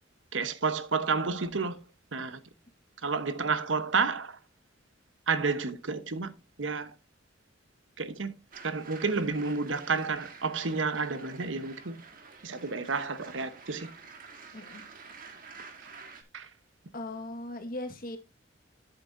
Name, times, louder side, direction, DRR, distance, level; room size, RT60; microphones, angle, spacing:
voice 1, 0.3-1.8 2.1-2.4 3.0-4.4 5.3-6.3 6.6-6.9 8.0-8.3 8.6-12.0 12.4-13.9 16.3-16.5, right 4 dB, 85° right, 1.0 m, -30 dB
sound 1, 8.5-16.2, right 5 dB, 50° right, 1.9 m, -49 dB
voice 2, 14.5-14.8 16.9-18.2, left 1 dB, 50° left, 1.6 m, -38 dB
11.0 x 8.0 x 2.6 m
head